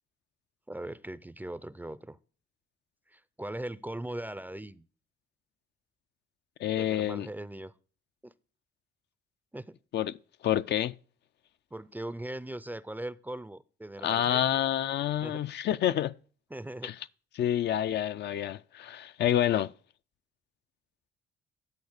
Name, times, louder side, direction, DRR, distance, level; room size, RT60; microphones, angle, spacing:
voice 1, 0.7-2.2 3.1-4.9 6.8-7.7 8.2-8.3 9.5-9.8 11.7-14.6 15.2-15.4 16.5-16.9, right 1 dB, 10° right, 0.4 m, -40 dB
voice 2, 6.6-7.3 9.9-10.1 10.4-11.0 14.0-16.1 16.8-16.9 17.4-19.7, left 11 dB, 60° left, 0.4 m, -28 dB
9.5 x 4.1 x 6.4 m
cardioid pair, 90°, 20 cm